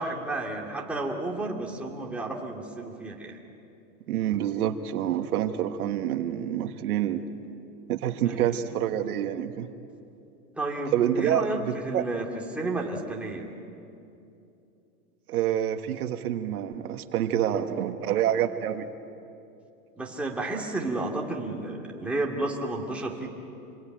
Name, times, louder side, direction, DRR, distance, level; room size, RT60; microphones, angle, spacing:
voice 1, 0.0-3.4 8.3-8.5 10.6-12.3 12.5-13.5 20.0-23.3, right 2 dB, 5° right, -2 dB, 2.3 m, -31 dB
voice 2, 4.1-7.2 7.9-9.7 10.9-11.5 11.9-12.0 15.3-18.9, right 10 dB, 70° right, 8 dB, 1.6 m, -27 dB
27.0 x 21.0 x 9.1 m, 2.7 s
supercardioid pair, 150°, 46 cm